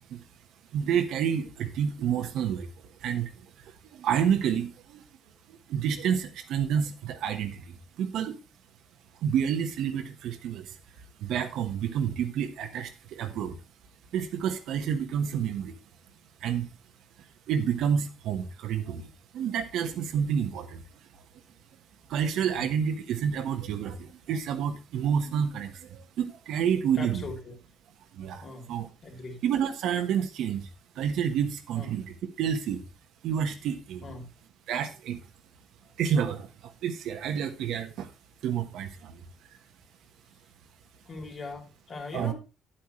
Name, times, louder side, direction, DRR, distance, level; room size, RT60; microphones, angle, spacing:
voice 1, 0.7-5.0 5.5-8.4 9.2-10.8 11.2-13.6 14.1-15.7 16.4-16.7 17.5-20.8 22.1-27.3 28.1-28.9 29.4-30.7 30.9-32.8 33.2-34.0 34.7-35.2 36.0-38.1 38.4-39.2 42.1-42.3, right 8 dB, 75° right, 6 dB, 1.3 m, -29 dB
voice 2, 27.0-27.5 28.4-28.7 29.0-29.4 31.7-31.9 34.0-34.2 35.8-35.9 41.0-42.3, left 3 dB, 40° left, 2 dB, 3.3 m, -40 dB
10.5 x 8.7 x 3.1 m, 0.28 s
cardioid pair, 135°, 0 cm